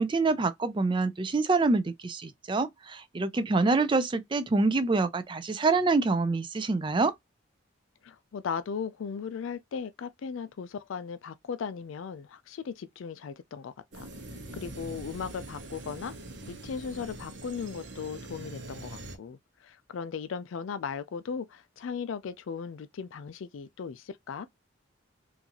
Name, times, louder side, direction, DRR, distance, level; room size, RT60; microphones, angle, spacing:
voice 1, 0.0-7.1, right 3 dB, 25° right, 0.4 m, -26 dB
voice 2, 8.0-14.1 14.5-16.1 16.5-24.5, left 6 dB, 75° left, 0.4 m, -37 dB
sound 1, 13.9-19.2, right 2 dB, 60° right, 0.9 m, -43 dB
3.8 x 2.6 x 2.9 m
head